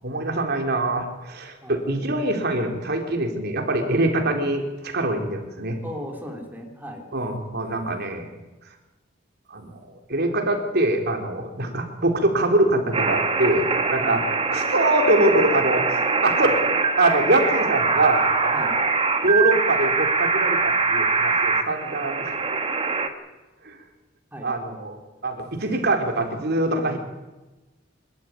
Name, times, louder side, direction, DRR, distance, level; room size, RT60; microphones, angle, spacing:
voice 1, 0.0-5.8 7.1-8.3 9.5-16.6 17.0-18.6 18.8-18.9 19.2-22.3 23.6-23.8 24.4-27.0, right 2 dB, 55° right, 4 dB, 3.9 m, -24 dB
voice 2, 5.8-7.0 14.0-14.2 18.5-18.7 24.3-24.5, equal, 10° right, 1 dB, 3.7 m, -36 dB
sound 1, 12.9-23.1, right 4 dB, 30° right, 1.9 m, -23 dB
26.0 x 13.0 x 9.7 m, 1.1 s
head